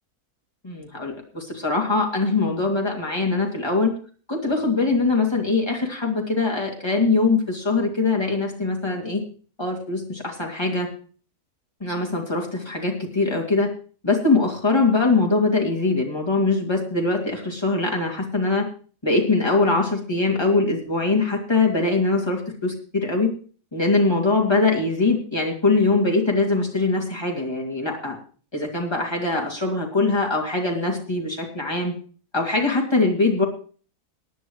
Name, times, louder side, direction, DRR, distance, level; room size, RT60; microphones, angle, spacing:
voice 1, 0.6-3.9 4.3-9.2 9.6-10.9 11.8-13.7 14.0-18.7 19.0-23.3 23.7-28.2 28.5-31.9 32.3-33.4, left 3 dB, 15° left, -1 dB, 2.5 m, -22 dB
18.5 x 10.0 x 3.1 m, 0.40 s
omnidirectional pair, 1.6 m